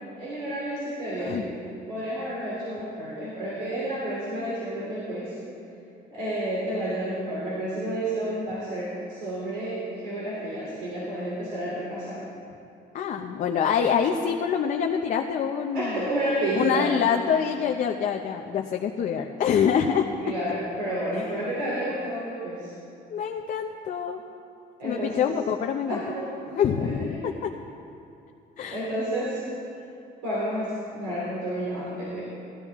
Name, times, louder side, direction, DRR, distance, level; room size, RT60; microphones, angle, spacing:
voice 1, 0.2-1.6 1.9-5.3 6.1-12.2 15.7-17.0 20.2-22.7 24.8-25.3 25.8-26.4 26.7-27.3 28.7-29.5 30.2-32.2, right 1 dB, 90° right, -7 dB, 3.3 m, -30 dB
voice 2, 12.9-16.1 16.6-20.1 21.2-21.3 21.6-21.8 23.1-24.2 24.8-26.0 26.5-27.5 28.6-28.9, left 7 dB, 50° left, 2 dB, 0.7 m, -26 dB
16.5 x 12.0 x 3.6 m, 2.6 s
cardioid pair, 110°, 17 cm